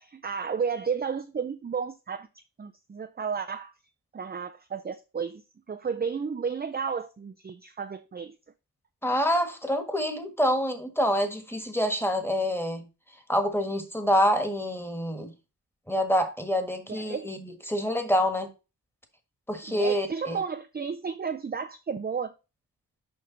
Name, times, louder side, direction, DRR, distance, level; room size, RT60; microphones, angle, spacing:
voice 1, 0.0-2.3 2.6-3.7 4.1-5.4 5.7-8.3 16.9-17.3 19.7-22.3, right 6 dB, 25° right, 0.5 m, -32 dB
voice 2, 9.0-12.9 13.3-15.3 15.9-18.5 19.5-20.4, equal, 5° left, 1.6 m, -26 dB
6.7 x 5.2 x 4.0 m
wide cardioid pair, 85°, 39 cm